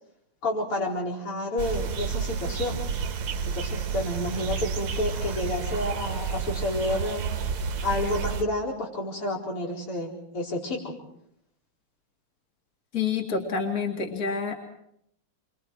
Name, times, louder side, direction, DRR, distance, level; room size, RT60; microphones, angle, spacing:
voice 1, 0.4-2.8 3.5-7.2 7.8-10.9, left 1 dB, 85° left, -1 dB, 5.4 m, -30 dB
sound 1, 1.6-8.4, right 6 dB, 80° right, 2.1 m, -30 dB
voice 2, 12.9-14.6, left 5 dB, 40° left, 1 dB, 2.8 m, -28 dB
29.0 x 24.0 x 4.7 m, 0.72 s
omnidirectional pair, 2.4 m